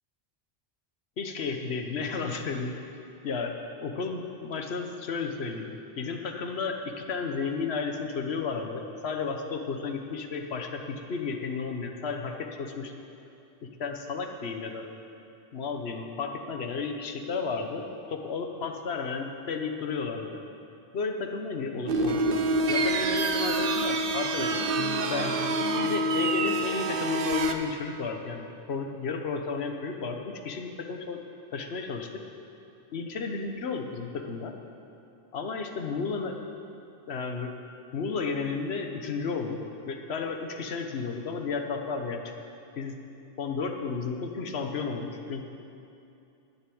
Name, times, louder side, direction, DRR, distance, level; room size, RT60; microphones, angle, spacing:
voice 1, 1.2-2.8 3.2-12.9 13.6-14.9 15.5-20.4 20.9-22.4 22.7-24.7 25.1-25.4 25.8-31.2 31.5-32.2 32.9-34.5 35.3-36.4 37.1-37.5 37.9-42.3 42.8-43.0 43.4-45.5, left 4 dB, 85° left, 4 dB, 1.2 m, -33 dB
sound 1, 21.9-27.5, right 2 dB, 60° right, 0.9 m, -26 dB
11.5 x 6.9 x 9.2 m, 2.7 s
omnidirectional pair, 1.1 m